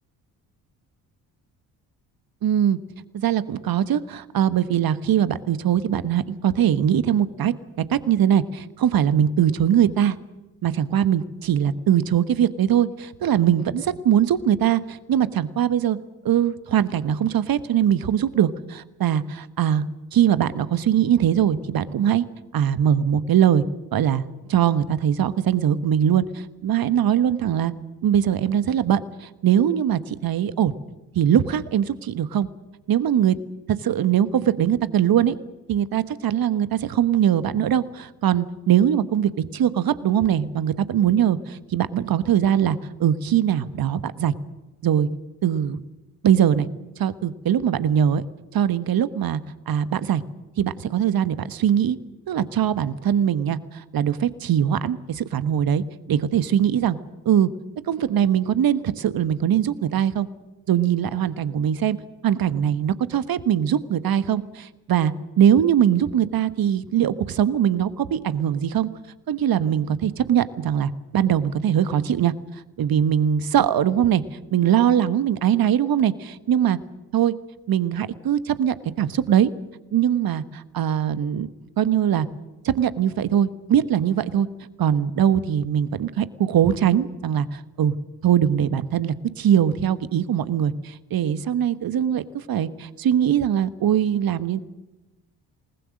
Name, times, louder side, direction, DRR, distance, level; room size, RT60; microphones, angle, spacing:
voice 1, 2.4-2.8 3.1-7.5 7.9-10.2 10.6-16.0 16.2-19.8 20.1-22.2 22.5-23.6 23.9-27.7 28.0-30.7 31.1-32.5 32.9-33.4 33.7-35.4 35.7-44.3 44.8-45.1 45.4-45.8 46.2-46.7 47.0-48.2 48.5-49.4 49.7-50.2 50.6-52.0 52.3-55.8 56.1-57.0 57.2-57.5 57.9-60.3 60.7-62.0 62.2-68.9 69.3-72.3 72.8-74.2 74.5-76.8 77.1-77.3 77.7-79.5 79.9-81.5 81.8-82.3 82.6-84.5 84.8-87.9 88.2-92.2 92.5-94.6, right 9 dB, 45° right, 15 dB, 1.4 m, -21 dB
27.5 x 19.5 x 6.5 m, 1.1 s
figure-of-eight pair, 45°, 48 cm